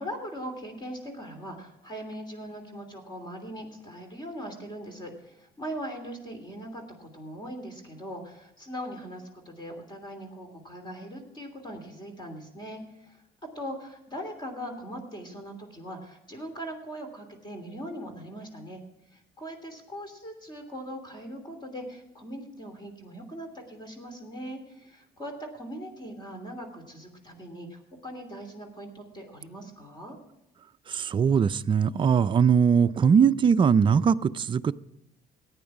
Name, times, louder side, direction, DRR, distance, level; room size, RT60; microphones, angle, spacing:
voice 1, 0.0-18.8 19.1-30.2, equal, 25° left, 4 dB, 2.9 m, -40 dB
voice 2, 30.9-34.7, right 7 dB, 30° right, 11 dB, 0.4 m, -21 dB
14.5 x 9.5 x 4.8 m, 0.88 s
cardioid pair, 110°, 17 cm